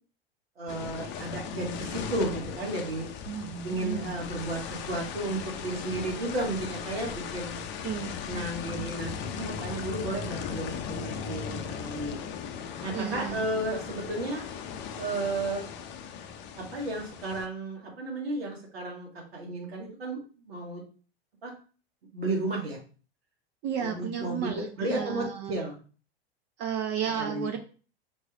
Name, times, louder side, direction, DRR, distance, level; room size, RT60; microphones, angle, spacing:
voice 1, 0.6-3.1 3.6-7.6 8.3-9.1 9.4-12.2 12.8-14.5 14.9-15.6 16.6-20.2 20.5-20.8 21.4-21.5 22.1-22.8 23.8-25.7 27.2-27.5, right 2 dB, 80° right, -1 dB, 1.8 m, -33 dB
sound 1, 0.7-17.5, left 7 dB, 35° left, 0.6 m, -38 dB
voice 2, 3.3-4.2 7.8-8.1 12.9-13.5 23.6-25.6 26.6-27.6, right 8 dB, 35° right, 6 dB, 0.5 m, -33 dB
5.2 x 3.1 x 2.4 m, 0.38 s
hypercardioid pair, 100°, 30 cm